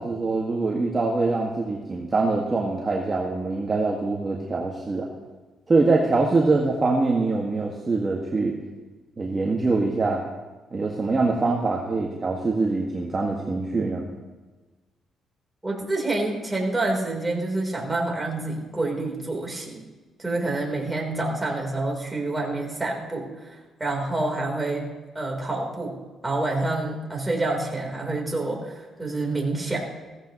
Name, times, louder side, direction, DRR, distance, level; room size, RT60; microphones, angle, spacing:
voice 1, 0.0-5.1 5.7-8.6 9.2-10.2 10.7-14.1, right 3 dB, 30° right, -2 dB, 1.7 m, -24 dB
voice 2, 15.6-19.8 20.2-24.9 25.1-26.0 26.2-29.9, right 2 dB, 15° right, -1 dB, 3.6 m, -27 dB
16.5 x 14.5 x 3.0 m, 1.2 s
cardioid pair, 90°, 0 cm